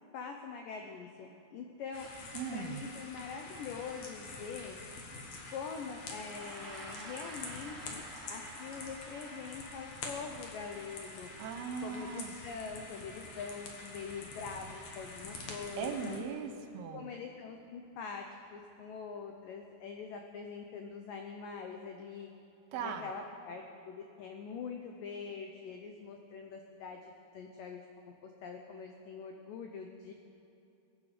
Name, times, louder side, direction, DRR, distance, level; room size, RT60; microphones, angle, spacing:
voice 1, 0.1-2.1 2.5-5.1 5.5-8.0 8.3-11.3 11.8-16.2 16.9-22.3 22.8-27.9 28.2-30.1, left 5 dB, 90° left, 3 dB, 1.9 m, -44 dB
sound 1, 1.9-16.2, left 3 dB, 55° left, 2.1 m, -46 dB
voice 2, 2.3-2.8 11.4-12.3 15.8-17.1 22.7-23.1, right 5 dB, 75° right, 6 dB, 2.6 m, -38 dB
Gong, 6.2-15.8, right 2 dB, 60° right, 0.6 m, -53 dB
22.5 x 9.0 x 5.0 m, 2.8 s
omnidirectional pair, 5.0 m